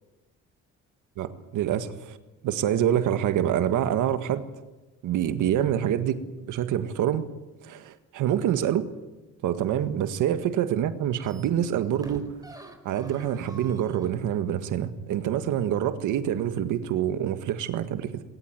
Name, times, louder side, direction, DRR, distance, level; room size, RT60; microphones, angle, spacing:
voice 1, 1.2-2.2 2.4-4.5 5.0-7.2 7.6-8.9 9.4-12.3 12.8-18.2, right 10 dB, 85° right, 10 dB, 1.7 m, -26 dB
sound 1, 10.5-10.8 11.1-14.3 14.7-14.8, right 2 dB, 10° right, 4.4 m, -48 dB
20.5 x 18.5 x 9.5 m, 1.1 s
cardioid pair, 90°, 30 cm